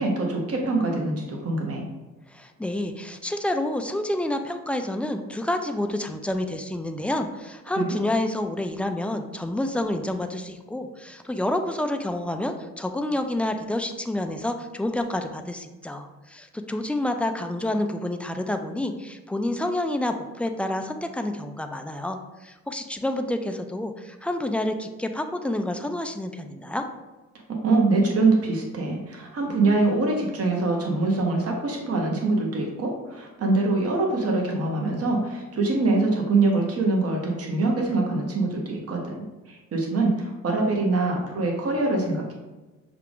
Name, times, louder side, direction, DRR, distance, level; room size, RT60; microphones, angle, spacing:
voice 1, 0.0-1.9 7.8-8.0 27.5-39.1 39.5-42.3, right 3 dB, 50° right, 1 dB, 1.1 m, -24 dB
voice 2, 2.3-26.8, left 1 dB, 5° left, 6 dB, 0.3 m, -28 dB
5.7 x 2.4 x 3.5 m, 1.2 s
cardioid pair, 90°, 30 cm